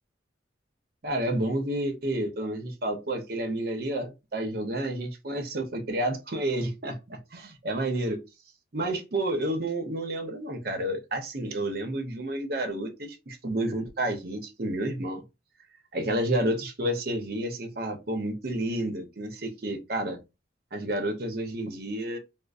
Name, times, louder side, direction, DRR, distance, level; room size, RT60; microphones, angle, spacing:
voice 1, 1.0-8.2 8.7-15.2 15.9-20.2 20.7-22.2, right 1 dB, 50° right, 0.7 m, -30 dB
5.1 x 2.0 x 2.4 m
head